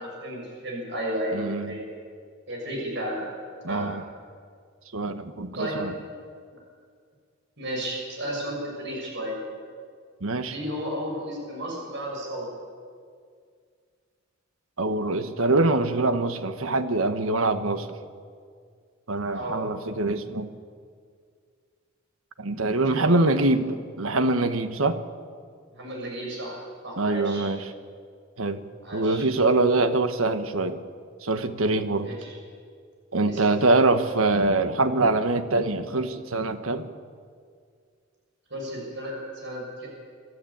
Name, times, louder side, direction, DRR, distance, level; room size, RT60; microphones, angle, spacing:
voice 1, 0.0-1.9 2.5-3.2 3.7-3.9 5.6-5.8 7.6-9.4 10.5-12.5 19.3-19.6 22.8-23.2 25.7-27.4 28.8-29.2 32.0-32.3 33.3-33.4 38.5-39.9, right 1 dB, 60° right, -1 dB, 6.8 m, -33 dB
voice 2, 1.3-1.8 3.6-4.0 4.9-5.9 10.2-10.5 14.8-17.9 19.1-20.5 22.4-25.0 27.0-27.6 28.4-28.6 28.9-30.8 31.2-32.1 33.1-36.9, right 2 dB, 85° right, 10 dB, 1.4 m, -24 dB
26.0 x 13.5 x 8.8 m, 2.1 s
head